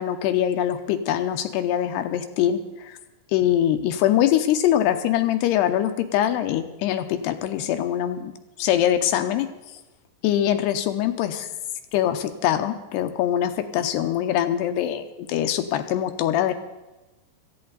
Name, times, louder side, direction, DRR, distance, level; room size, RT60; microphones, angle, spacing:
voice 1, 0.0-3.0 3.3-8.3 8.6-9.5 10.2-11.5 11.9-16.5, left 11 dB, 80° left, 8 dB, 2.7 m, -23 dB
19.5 x 14.5 x 4.0 m, 1.1 s
omnidirectional pair, 5.2 m